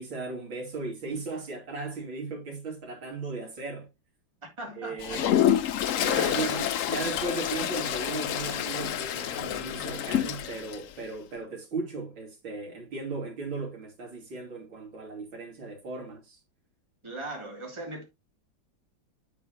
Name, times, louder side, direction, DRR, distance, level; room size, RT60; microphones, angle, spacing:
voice 1, 0.0-3.9 4.8-5.3 5.9-16.4, right 3 dB, 85° right, 3.7 m, -36 dB
voice 2, 4.6-6.7 17.0-18.0, right 2 dB, 15° right, 3.1 m, -39 dB
Toilet flush, 5.0-10.8, left 10 dB, 65° left, 0.8 m, -28 dB
8.7 x 8.3 x 3.0 m
omnidirectional pair, 2.1 m